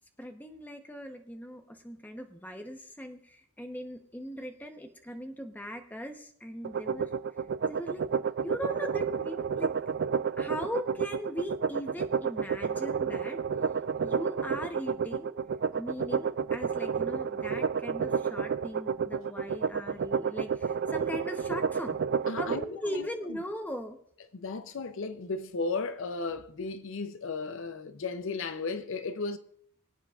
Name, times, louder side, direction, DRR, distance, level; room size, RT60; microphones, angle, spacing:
voice 1, 0.2-7.1 7.6-8.1 8.4-9.7 10.4-13.4 14.0-15.4 15.8-22.0 22.4-24.0, equal, 10° left, 0.9 m, -39 dB
sound 1, 6.6-22.6, right 6 dB, 50° right, 0.3 m, -30 dB
voice 2, 22.3-23.4 24.3-29.4, left 4 dB, 60° left, 0.6 m, -35 dB
25.0 x 8.3 x 2.4 m
head